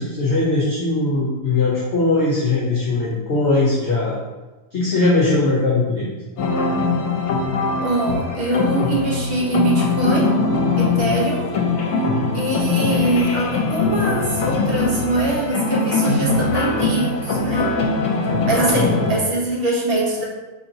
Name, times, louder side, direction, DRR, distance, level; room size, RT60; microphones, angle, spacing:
voice 1, 0.0-4.2 4.7-6.1 18.7-19.1, left 3 dB, 55° left, -6 dB, 0.9 m, -20 dB
sound 1, 6.4-19.2, left 3 dB, 80° left, 1.1 m, -21 dB
voice 2, 7.8-10.4 10.8-11.5 12.3-17.7 18.4-20.2, right 2 dB, 50° right, -3 dB, 0.8 m, -23 dB
4.3 x 2.8 x 2.7 m, 1.1 s
omnidirectional pair, 1.6 m